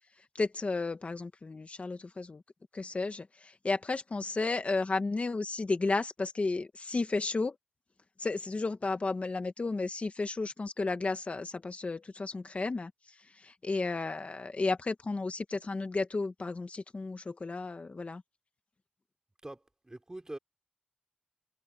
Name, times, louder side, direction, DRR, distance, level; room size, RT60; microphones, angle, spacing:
voice 1, 0.3-2.4 2.7-7.6 8.2-12.9 13.3-18.2, left 3 dB, 50° left, 1.5 m, -33 dB
voice 2, 19.4-20.4, right 1 dB, 25° right, 3.8 m, -44 dB
wide cardioid pair, 75°, 3 cm